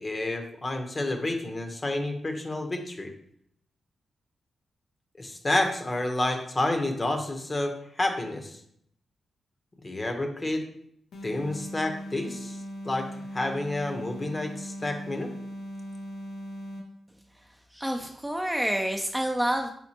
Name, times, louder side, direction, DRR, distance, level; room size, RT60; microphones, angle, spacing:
voice 1, 0.0-3.1 5.2-8.6 9.8-10.6 11.2-12.6 12.8-15.3, left 2 dB, 35° left, 4 dB, 0.8 m, -29 dB
sound 1, 11.1-17.0, equal, 85° left, 0.7 m, -39 dB
voice 2, 17.7-19.7, equal, 5° right, 3 dB, 0.4 m, -28 dB
4.3 x 4.0 x 2.8 m, 0.68 s
cardioid pair, 65°, 0 cm